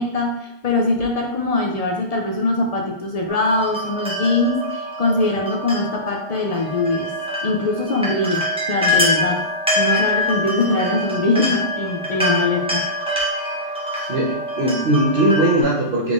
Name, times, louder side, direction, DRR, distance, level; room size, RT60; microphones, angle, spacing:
voice 1, 0.0-7.1 7.4-9.4 9.7-12.8, left 2 dB, 55° left, 2 dB, 0.4 m, -22 dB
sound 1, 3.3-15.6, left 1 dB, 5° right, 0.7 m, -25 dB
voice 2, 14.1-16.1, right 1 dB, 60° right, -5 dB, 0.8 m, -19 dB
3.6 x 3.6 x 2.4 m, 0.82 s
omnidirectional pair, 1.1 m